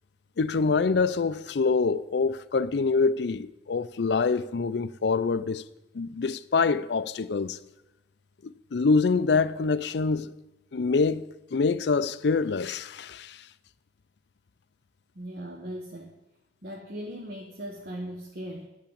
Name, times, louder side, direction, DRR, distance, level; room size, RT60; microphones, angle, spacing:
voice 1, 0.4-5.6 5.9-7.6 8.4-10.3 10.7-11.3 11.5-13.4, left 4 dB, 70° left, 0.5 m, -25 dB
voice 2, 15.1-16.1 16.6-18.7, equal, 55° right, 1.2 m, -38 dB
11.0 x 5.9 x 8.6 m
head